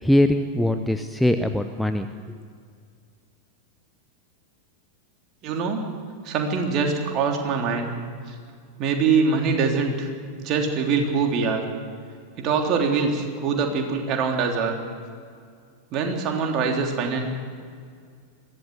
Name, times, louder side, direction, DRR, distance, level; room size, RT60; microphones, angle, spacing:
voice 1, 0.0-2.1, left 1 dB, ahead, 8 dB, 0.8 m, -21 dB
voice 2, 5.4-5.8 6.2-7.9 8.8-10.1 10.4-11.6 12.4-14.7 15.9-17.3, right 5 dB, 35° right, 2 dB, 3.4 m, -23 dB
22.0 x 15.5 x 8.1 m, 2.1 s
figure-of-eight pair, 90°, 0 cm